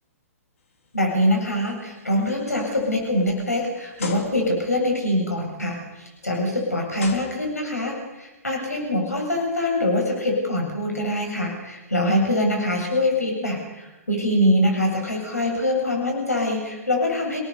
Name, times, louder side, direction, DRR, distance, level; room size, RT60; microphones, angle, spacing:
sound 1, 0.8-1.1 1.6-1.8 2.5-2.6 4.0-4.7 6.2-6.3 7.0-7.9, left 5 dB, 60° left, 3.3 m, -36 dB
voice 1, 0.9-17.4, left 1 dB, 85° left, 1 dB, 7.9 m, -24 dB
28.5 x 18.5 x 7.0 m, 1.1 s
figure-of-eight pair, 115°, 8 cm